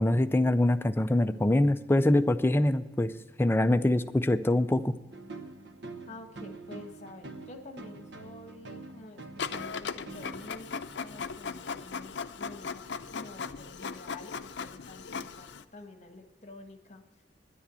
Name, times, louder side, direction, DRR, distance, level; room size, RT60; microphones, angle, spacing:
voice 1, 0.0-3.1 3.4-4.9, left 1 dB, 15° left, 11 dB, 0.4 m, -24 dB
sound 1, 5.1-10.5, right 3 dB, 70° right, 1.0 m, -45 dB
voice 2, 6.1-17.2, left 2 dB, 40° left, 6 dB, 1.3 m, -49 dB
Printer, 9.4-15.6, left 5 dB, 65° left, 0.5 m, -38 dB
10.5 x 10.0 x 6.9 m, 1.2 s
head